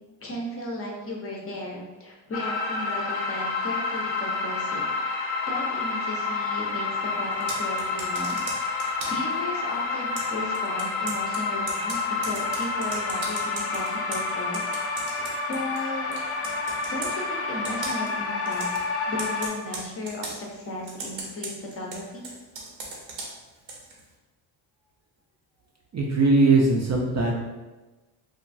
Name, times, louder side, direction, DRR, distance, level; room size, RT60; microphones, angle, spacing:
voice 1, 0.2-4.9 5.5-8.8 9.1-14.8 15.5-16.1 16.9-22.3, left 1 dB, 30° left, -2 dB, 0.6 m, -35 dB
sound 1, 2.3-19.5, left 4 dB, 80° left, 0.6 m, -29 dB
Computer keyboard, 7.3-9.3 10.2-15.9 16.1-17.2 17.6-18.1 18.5-18.8 19.2-20.4 20.9-24.0, right 3 dB, 75° right, 0.8 m, -38 dB
voice 2, 25.9-27.3, right 3 dB, 40° right, -1 dB, 0.4 m, -20 dB
3.0 x 2.3 x 2.5 m, 1.1 s
cardioid pair, 105°, 46 cm